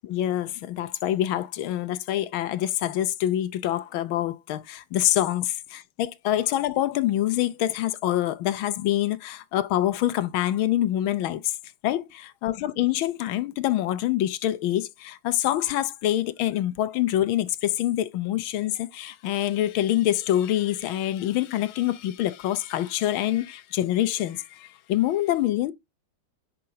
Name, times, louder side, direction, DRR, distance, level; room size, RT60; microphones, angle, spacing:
voice 1, 0.0-11.5 11.8-25.7, left 13 dB, 75° left, 1.5 m, -26 dB
7.5 x 5.8 x 3.9 m
omnidirectional pair, 2.3 m